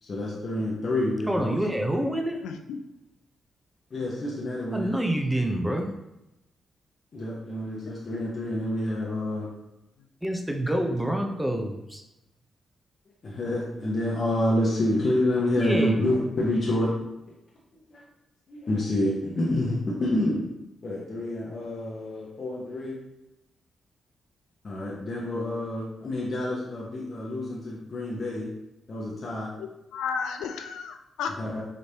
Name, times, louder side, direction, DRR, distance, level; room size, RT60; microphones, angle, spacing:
voice 1, 0.0-1.6 3.9-4.9 7.1-9.5 13.2-16.9 17.9-18.0 18.5-20.4 20.8-23.0 24.6-28.5 28.9-29.5 31.4-31.6, left 1 dB, 55° left, -5 dB, 1.0 m, -28 dB
voice 2, 1.3-2.4 4.7-5.9 10.2-12.0 15.6-16.0, right 1 dB, 5° right, 3 dB, 0.8 m, -27 dB
voice 3, 2.4-2.8 29.6-31.3, left 6 dB, 80° left, 6 dB, 0.4 m, -33 dB
5.2 x 3.1 x 2.9 m, 0.91 s
hypercardioid pair, 40°, 0 cm